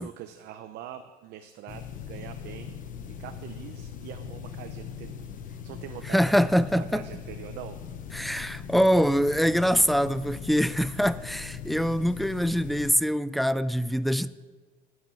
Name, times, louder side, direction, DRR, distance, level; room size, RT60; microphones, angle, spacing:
voice 1, 0.0-2.8 3.1-6.3 6.7-7.8 10.5-10.6, right 11 dB, 80° right, 0.7 m, -43 dB
sound 1, 1.7-12.9, left 7 dB, 50° left, 1.0 m, -40 dB
voice 2, 6.1-7.1 8.1-14.3, equal, ahead, 0.4 m, -24 dB
11.5 x 7.3 x 7.6 m
cardioid pair, 110°, 17 cm